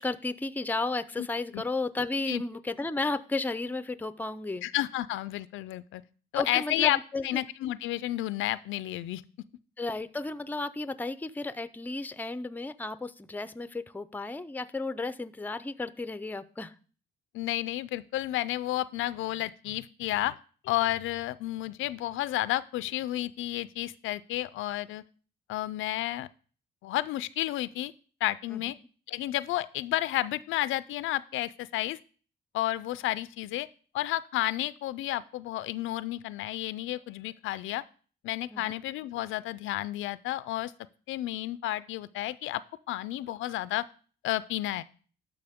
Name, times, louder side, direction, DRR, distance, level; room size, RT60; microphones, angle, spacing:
voice 1, 0.0-4.7 6.4-7.4 9.8-16.7 28.5-28.7 38.5-38.7, left 3 dB, 10° left, 14 dB, 0.5 m, -33 dB
voice 2, 4.6-6.0 6.3-7.0 7.2-9.2 17.3-20.3 20.6-25.0 25.5-26.3 26.8-27.9 28.2-28.8 29.1-32.0 32.5-33.7 33.9-37.8 38.2-40.7 41.1-42.6 42.9-43.8 44.2-44.8, left 15 dB, 80° left, 17 dB, 0.4 m, -31 dB
11.5 x 6.0 x 3.6 m, 0.41 s
cardioid pair, 90°, 20 cm